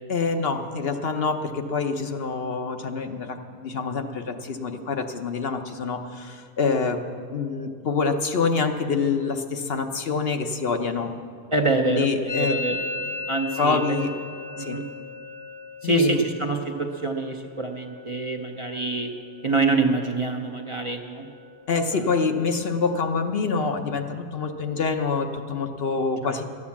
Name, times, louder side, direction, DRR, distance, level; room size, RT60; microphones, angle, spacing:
voice 1, 0.1-7.0 7.3-11.1 11.8-12.8 13.6-14.2 14.6-14.8 15.8-16.2 21.7-26.4, left 4 dB, 60° left, 6 dB, 1.0 m, -26 dB
voice 2, 11.5-12.8 13.3-14.0 14.6-14.8 15.8-19.1 19.4-21.3 21.9-22.1 26.2-26.4, right 3 dB, 30° right, 2 dB, 0.7 m, -26 dB
Musical instrument, 12.3-19.9 20.2-20.8 21.0-21.6 21.9-23.9, left 3 dB, 30° left, 0.4 m, -38 dB
13.5 x 9.6 x 7.2 m, 2.2 s
omnidirectional pair, 1.2 m